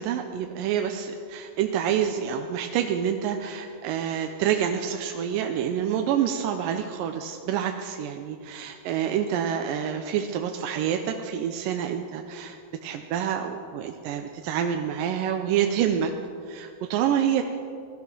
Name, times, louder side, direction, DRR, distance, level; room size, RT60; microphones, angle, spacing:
voice 1, 0.0-12.6 12.8-16.1 16.5-17.4, right 9 dB, 80° right, 5 dB, 2.3 m, -27 dB
18.0 x 12.5 x 6.1 m, 2.4 s
omnidirectional pair, 4.2 m